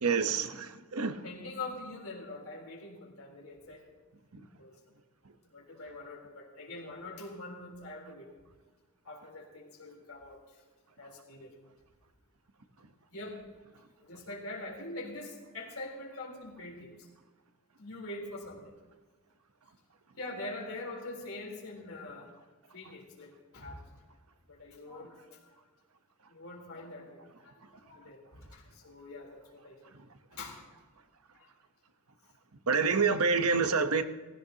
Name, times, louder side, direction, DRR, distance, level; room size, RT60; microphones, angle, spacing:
voice 1, 0.0-1.2 32.7-34.0, right 5 dB, 80° right, 8 dB, 1.0 m, -27 dB
voice 2, 1.2-3.8 4.6-4.8 5.4-8.3 9.0-10.6 11.0-11.5 13.1-13.4 14.0-17.1 17.8-18.7 20.2-22.3 22.7-23.9 24.5-25.5 26.3-29.9 30.3-30.6 31.3-31.5, left 2 dB, 70° left, -1 dB, 3.8 m, -44 dB
18.5 x 16.0 x 2.9 m, 1.4 s
head